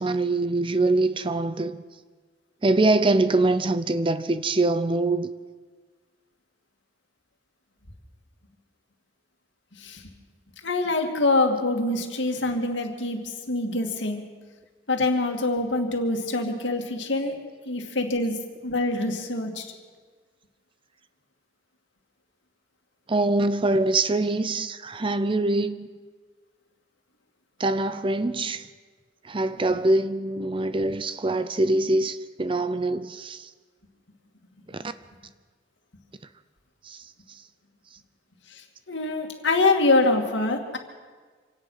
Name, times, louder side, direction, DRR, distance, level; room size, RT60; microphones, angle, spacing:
voice 1, 0.0-1.8 2.6-5.3 23.1-25.9 27.6-28.7 29.2-33.5 34.7-34.9 36.8-37.4, right 2 dB, 30° right, 0.6 m, -24 dB
voice 2, 9.7-10.0 10.6-14.3 14.9-17.4 17.7-19.7 38.5-40.8, left 2 dB, 70° left, 2.4 m, -25 dB
26.0 x 17.5 x 5.7 m
head